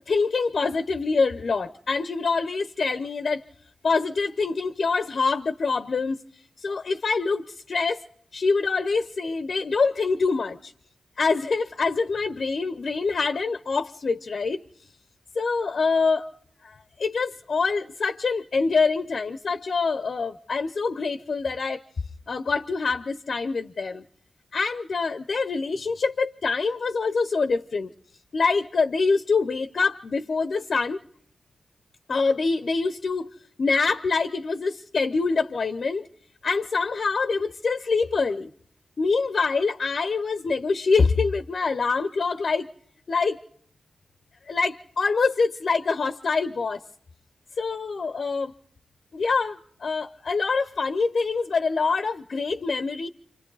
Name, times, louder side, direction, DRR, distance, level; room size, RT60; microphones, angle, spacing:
voice 1, 0.1-3.4 3.8-6.2 6.6-8.0 8.3-10.7 11.2-14.6 15.3-16.3 16.6-21.8 22.3-24.0 24.5-27.9 28.3-31.0 32.1-36.1 36.4-38.5 39.0-42.7 43.1-43.4 44.5-46.8 47.6-48.5 49.1-53.1, left 4 dB, 60° left, 0.7 m, -25 dB
27.5 x 24.5 x 4.0 m
cardioid pair, 75°, 0 cm